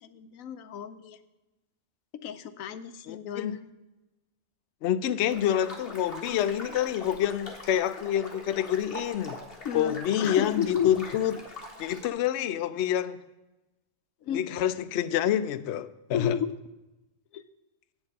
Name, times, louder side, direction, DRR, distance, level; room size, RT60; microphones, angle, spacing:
voice 1, 0.0-1.2 2.2-3.7 9.6-11.2 14.2-14.5 16.1-16.5 17.3-17.4, left 8 dB, 80° left, 1.1 m, -33 dB
voice 2, 3.1-3.5 4.8-9.4 9.7-11.3 11.8-13.2 14.3-16.3, left 10 dB, 65° left, 0.8 m, -27 dB
sound 1, 5.3-12.1, left 1 dB, 45° left, 1.9 m, -42 dB
8.8 x 7.3 x 6.5 m
omnidirectional pair, 1.4 m